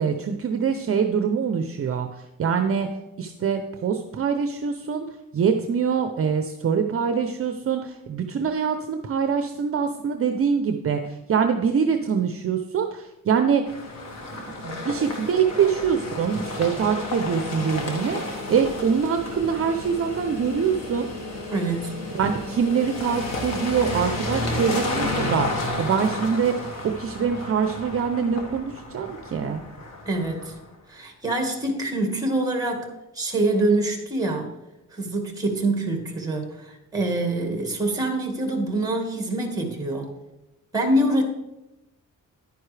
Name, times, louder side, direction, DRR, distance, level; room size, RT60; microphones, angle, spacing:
voice 1, 0.0-2.9 3.2-5.0 5.3-13.7 14.3-21.1 22.1-29.6, right 6 dB, 45° right, 6 dB, 0.6 m, -24 dB
sound 1, 13.7-30.6, left 2 dB, 55° left, 1.7 m, -32 dB
voice 2, 21.5-22.0 30.1-30.5 30.9-32.9 33.1-34.5 34.9-40.1 40.7-41.2, right 2 dB, 10° right, 4 dB, 1.7 m, -25 dB
10.5 x 9.4 x 3.3 m, 0.97 s
wide cardioid pair, 140°, 32 cm